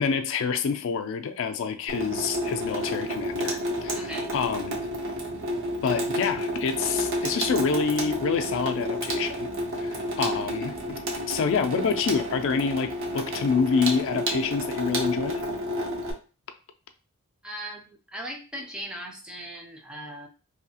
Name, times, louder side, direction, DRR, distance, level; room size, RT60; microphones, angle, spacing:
voice 1, 0.0-4.8 5.8-9.5 9.8-11.0 11.3-15.4, left 5 dB, 60° left, 6 dB, 0.3 m, -27 dB
Water tap faucet / Sink (filling or washing), 1.9-16.1, equal, 65° right, 0.7 m, -30 dB
voice 2, 3.9-4.3 17.4-20.3, right 1 dB, 5° right, 1 dB, 0.4 m, -38 dB
2.7 x 2.3 x 2.7 m, 0.34 s
head